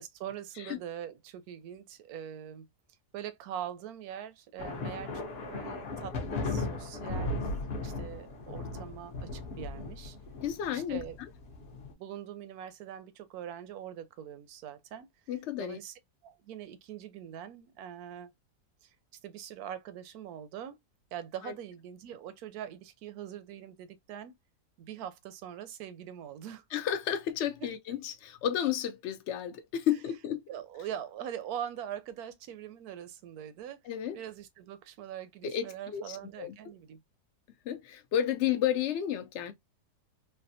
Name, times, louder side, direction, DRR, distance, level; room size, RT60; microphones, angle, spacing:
voice 1, 0.0-2.7 3.1-7.5 7.8-10.2 10.7-11.2 12.0-15.1 15.6-18.3 18.8-18.9 19.2-20.8 21.1-24.4 24.8-26.6 27.6-27.7 30.5-33.8 34.1-37.0, right 10 dB, 75° right, 1.0 m, -42 dB
sound 1, 4.6-11.9, left 2 dB, 50° left, 0.8 m, -37 dB
voice 2, 10.4-11.0 15.3-15.8 21.4-21.5 26.7-30.4 33.9-34.2 35.4-36.5 37.7-39.5, left 10 dB, 75° left, 0.6 m, -32 dB
3.3 x 2.0 x 2.6 m
omnidirectional pair, 1.7 m